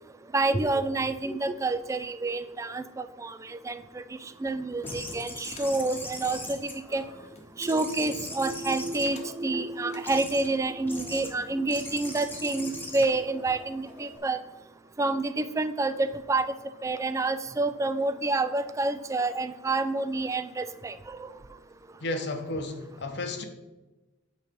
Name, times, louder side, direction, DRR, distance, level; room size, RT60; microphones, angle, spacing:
voice 1, 0.3-7.0 7.6-14.4 15.0-16.5 16.8-21.3, right 2 dB, 15° right, 11 dB, 0.3 m, -28 dB
sound 1, 4.8-5.7 6.1-7.5 8.1-8.6 9.0-9.5 9.9-10.1 10.7-11.6, left 1 dB, 35° left, 1.0 m, -49 dB
sound 2, 4.8-7.3 7.6-9.6 10.0-10.5 10.9-11.3 11.7-14.2, left 2 dB, 10° left, 1.0 m, -40 dB
voice 2, 22.0-23.5, left 2 dB, 60° left, 6 dB, 0.9 m, -33 dB
8.3 x 3.2 x 5.2 m, 1.1 s
head